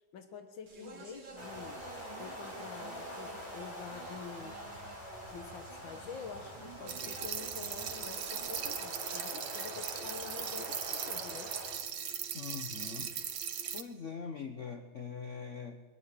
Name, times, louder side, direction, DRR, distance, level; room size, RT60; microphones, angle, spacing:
voice 1, 0.1-1.8 2.2-4.6 5.3-11.6, left 6 dB, 85° left, 7 dB, 2.1 m, -47 dB
Speech, 0.7-8.9, right 4 dB, 70° right, 3.1 m, -52 dB
sound 1, 1.4-11.8, equal, 25° left, 4.7 m, -45 dB
sound 2, 6.9-13.8, right 8 dB, 85° right, 2.0 m, -39 dB
voice 2, 12.3-13.1 13.7-15.8, left 6 dB, 45° left, 5 dB, 1.4 m, -42 dB
22.0 x 13.0 x 9.9 m, 1.3 s
omnidirectional pair, 2.0 m